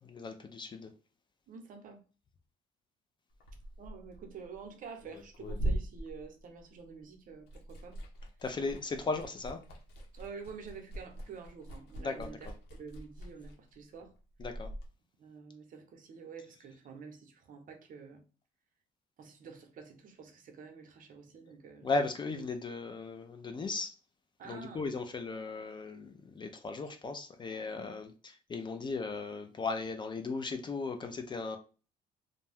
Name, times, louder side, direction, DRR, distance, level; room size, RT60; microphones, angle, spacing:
voice 1, 0.0-0.9 8.4-9.6 12.0-12.4 14.4-14.7 21.8-23.9 24.4-31.6, left 3 dB, 25° left, 0.4 m, -37 dB
voice 2, 1.5-2.0 3.8-8.0 10.1-12.5 12.8-14.1 15.2-18.2 19.2-21.9 24.4-24.9 27.9-28.0, right 5 dB, 55° right, 0.7 m, -48 dB
Liquid, 3.3-7.0 7.3-14.9, right 1 dB, 75° left, 0.8 m, -41 dB
2.5 x 2.2 x 3.3 m
cardioid pair, 110°, 17 cm